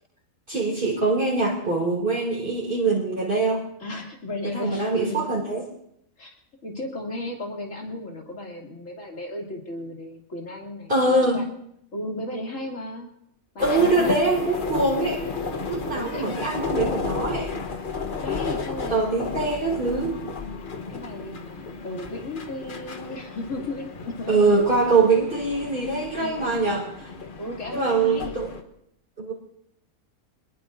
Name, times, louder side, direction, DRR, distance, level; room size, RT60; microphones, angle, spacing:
voice 1, 0.5-3.7 4.4-5.7 10.9-11.4 13.6-15.2 15.6-17.5 18.9-20.2 24.3-26.8 27.7-28.6 29.2-29.3, right 3 dB, 40° right, -4 dB, 2.9 m, -23 dB
voice 2, 3.8-5.2 6.2-6.3 6.6-11.5 11.9-13.1 13.5-14.2 15.9-16.4 18.2-19.5 20.9-24.7 26.1-26.8 27.4-28.3, left 1 dB, 65° left, 0 dB, 3.2 m, -35 dB
sound 1, 13.6-28.6, left 4 dB, 40° left, 1.3 m, -33 dB
25.5 x 20.5 x 2.6 m, 0.74 s
omnidirectional pair, 1.5 m